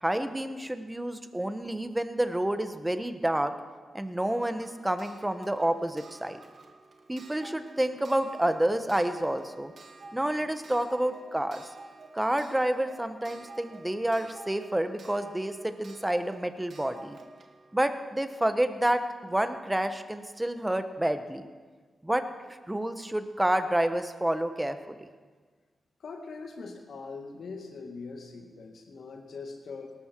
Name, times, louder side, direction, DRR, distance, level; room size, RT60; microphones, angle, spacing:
voice 1, 0.0-3.5 3.9-6.4 7.1-9.7 10.1-11.7 12.1-17.2 17.7-21.5 22.0-22.3 22.7-25.0, right 1 dB, 15° right, 9 dB, 1.3 m, -29 dB
Clock, 4.6-19.2 20.3-20.4 20.7-20.8, right 3 dB, 60° right, 1.7 m, -51 dB
voice 2, 26.0-29.9, left 4 dB, 70° left, 3 dB, 2.1 m, -42 dB
18.0 x 13.0 x 4.7 m, 1.5 s
supercardioid pair, 45°, 0 cm